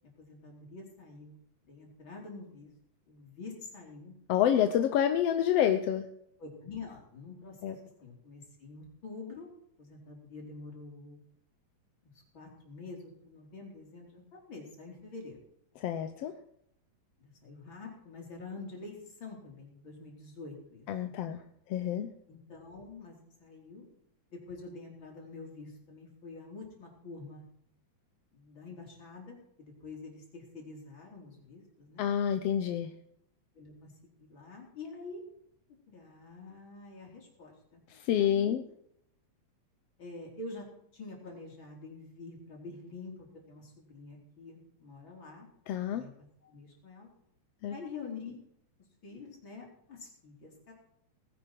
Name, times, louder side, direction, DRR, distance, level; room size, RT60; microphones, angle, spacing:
voice 1, 0.2-2.7 3.1-4.2 6.4-9.5 9.8-11.2 12.0-15.4 17.2-21.3 22.3-23.9 24.3-27.4 28.3-32.1 33.5-33.9 34.2-35.2 35.9-37.8 38.2-38.6 40.0-40.7 40.9-45.5 45.9-47.1 47.7-48.4 49.0-50.7, left 3 dB, 40° left, -1 dB, 4.9 m, -47 dB
voice 2, 4.3-6.1 7.6-7.7 15.8-16.3 20.9-21.4 21.7-22.1 32.0-32.9 37.9-38.6 45.7-46.0 47.6-47.7, left 10 dB, 70° left, 8 dB, 1.6 m, -28 dB
19.5 x 10.5 x 4.6 m, 0.72 s
omnidirectional pair, 3.3 m